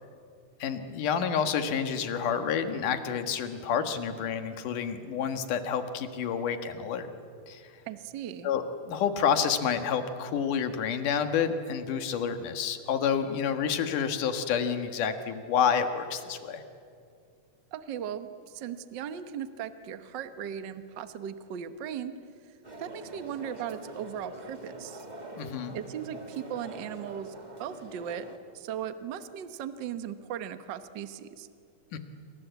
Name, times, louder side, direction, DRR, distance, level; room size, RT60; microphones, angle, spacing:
voice 1, 0.6-7.1 7.5-7.6 8.4-16.6 25.4-25.7 31.9-32.0, left 7 dB, 75° left, 8 dB, 3.1 m, -29 dB
voice 2, 7.9-8.5 17.7-22.1 22.8-25.1 25.7-27.3 27.6-28.3 28.5-31.5, right 9 dB, 85° right, 10 dB, 1.0 m, -37 dB
sound 1, 22.6-28.4, right 2 dB, 20° right, 1.5 m, -44 dB
28.0 x 25.5 x 8.2 m, 2.4 s
omnidirectional pair, 3.8 m